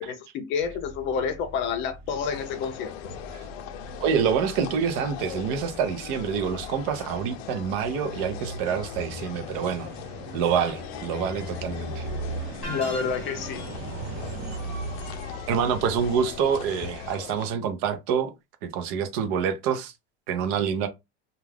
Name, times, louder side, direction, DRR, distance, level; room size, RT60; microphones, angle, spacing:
voice 1, 0.0-2.9 12.6-13.6, left 6 dB, 40° left, 0.5 m, -29 dB
sound 1, 0.6-17.2, right 2 dB, 90° right, 0.9 m, -40 dB
sound 2, 2.2-17.5, left 11 dB, 85° left, 0.5 m, -40 dB
voice 2, 4.0-9.9 10.3-12.1 15.5-18.3 18.6-19.9 20.3-20.9, right 7 dB, 60° right, 0.6 m, -27 dB
sound 3, 12.6-13.7, equal, 5° left, 1.2 m, -36 dB
2.3 x 2.3 x 3.3 m
cardioid pair, 160°, 30 cm